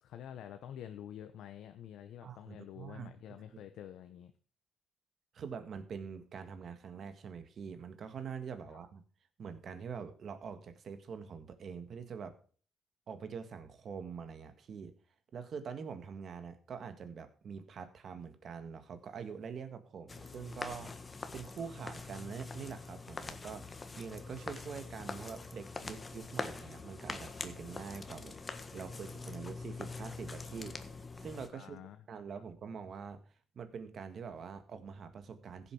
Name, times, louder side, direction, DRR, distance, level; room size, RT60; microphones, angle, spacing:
voice 1, 0.0-4.3 8.7-8.8 31.5-32.0 32.3-32.4, left 10 dB, 80° left, 8 dB, 0.9 m, -48 dB
voice 2, 2.2-3.1 3.5-3.6 5.3-9.0 9.4-12.4 13.1-14.9 15.3-20.9 21.3-28.4 28.7-30.8 31.2-31.8 32.1-33.2 33.6-35.7, right 6 dB, 55° right, 10 dB, 1.7 m, -45 dB
sound 1, 20.1-31.5, left 3 dB, 25° left, 1.4 m, -44 dB
15.5 x 7.3 x 4.8 m, 0.42 s
cardioid pair, 90°, 0 cm